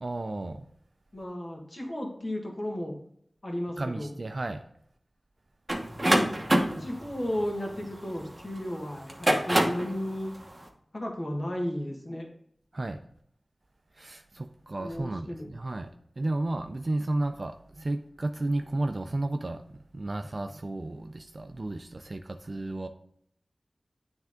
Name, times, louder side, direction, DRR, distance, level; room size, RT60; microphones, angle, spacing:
voice 1, 0.0-0.7 3.8-4.6 12.7-13.0 13.9-22.9, right 2 dB, 50° right, 0.3 m, -33 dB
voice 2, 1.1-2.9 3.4-4.1 6.0-10.3 10.9-12.3 14.8-15.5, left 1 dB, 45° left, 1.5 m, -34 dB
sound 1, 5.7-8.4 9.0-9.9, right 1 dB, 25° right, 1.0 m, -25 dB
9.0 x 3.5 x 3.6 m
wide cardioid pair, 75°, 0 cm